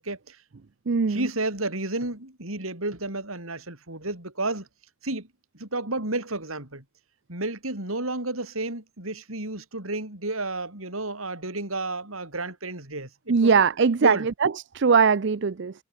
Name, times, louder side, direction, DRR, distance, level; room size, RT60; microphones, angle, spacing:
voice 1, 0.0-0.4 1.1-4.7 5.0-5.3 5.5-6.8 7.3-13.5 14.0-14.3, right 2 dB, 80° right, 6.7 m, -31 dB
voice 2, 0.9-1.3 13.3-15.7, right 5 dB, 55° right, 0.5 m, -21 dB
head